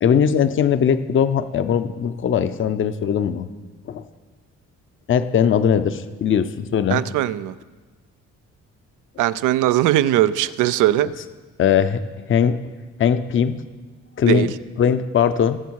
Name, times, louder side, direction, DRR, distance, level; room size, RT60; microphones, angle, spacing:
voice 1, 0.0-3.5 3.9-4.0 5.1-7.0 11.6-12.6 13.0-13.6 14.2-14.5 14.8-15.6, left 8 dB, 40° left, 11 dB, 0.6 m, -20 dB
voice 2, 6.9-7.5 9.2-11.1 14.2-14.5, right 13 dB, 85° right, 15 dB, 0.5 m, -19 dB
20.5 x 7.1 x 4.7 m, 1.3 s
cardioid pair, 90°, 30 cm